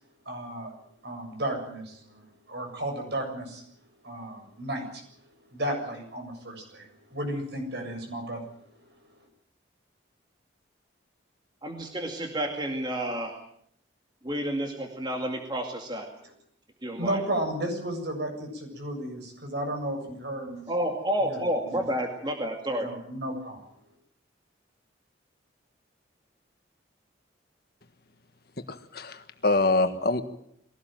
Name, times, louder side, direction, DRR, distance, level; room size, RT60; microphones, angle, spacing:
voice 1, 0.3-0.7 1.0-2.2 2.5-3.6 4.0-5.0 5.5-8.4 17.0-20.7 21.3-21.8 22.8-23.6, right 1 dB, 60° right, 3 dB, 7.3 m, -33 dB
voice 2, 11.6-13.4 14.2-16.1 16.8-17.2 20.7-22.9, equal, 20° right, 3 dB, 2.3 m, -30 dB
voice 3, 28.7-30.2, left 2 dB, 50° left, 9 dB, 1.6 m, -25 dB
22.0 x 17.5 x 9.2 m, 0.70 s
head